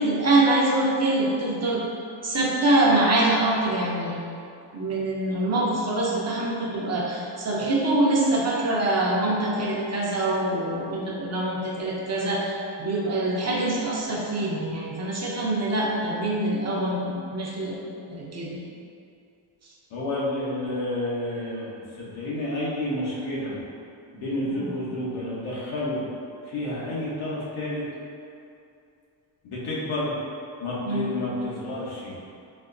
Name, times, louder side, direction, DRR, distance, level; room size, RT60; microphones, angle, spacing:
voice 1, 0.0-1.8 2.2-4.2 4.7-17.8 18.1-18.6 24.5-24.7 30.8-31.1, right 2 dB, 35° right, -4 dB, 0.6 m, -24 dB
voice 2, 19.9-21.7 22.0-23.6 24.1-26.0 26.5-27.8 29.4-30.1 30.6-32.1, left 1 dB, 85° left, -7 dB, 1.0 m, -30 dB
4.1 x 2.1 x 2.5 m, 2.5 s
cardioid pair, 80°, 47 cm